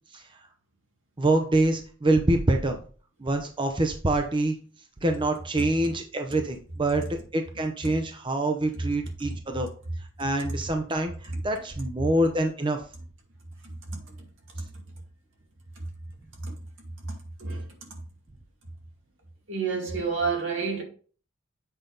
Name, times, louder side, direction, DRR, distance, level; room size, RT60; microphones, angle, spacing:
voice 1, 1.2-2.8 3.2-4.5 5.0-7.0 7.3-9.7 10.2-12.8, right 2 dB, 25° right, 0.7 m, -25 dB
voice 2, 13.6-14.0 14.6-14.7 15.8-15.9 16.4-16.6 17.0-17.1 17.4-17.7 19.5-20.8, right 4 dB, 70° right, 2.3 m, -30 dB
7.9 x 5.2 x 3.9 m
head